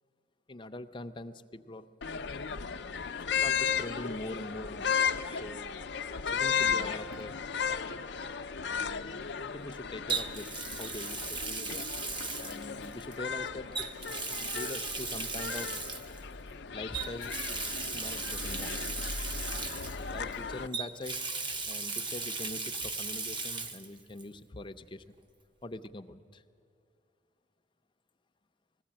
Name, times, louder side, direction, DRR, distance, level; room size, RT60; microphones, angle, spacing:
voice 1, 0.5-1.9 3.1-5.7 6.3-7.3 8.7-9.2 9.5-13.9 14.5-15.8 16.7-18.8 20.0-21.2 21.6-25.0 25.6-26.4, left 1 dB, 25° left, 8 dB, 0.6 m, -43 dB
sound 1, 2.0-20.7, left 6 dB, 65° left, 0.6 m, -35 dB
Water tap faucet, 7.1-7.4 10.1-13.1 13.7-16.2 16.9-20.4 20.7-23.9 24.2-24.3 25.8-25.9, right 4 dB, 25° right, 0.8 m, -37 dB
19.5 x 15.5 x 8.7 m, 2.4 s
head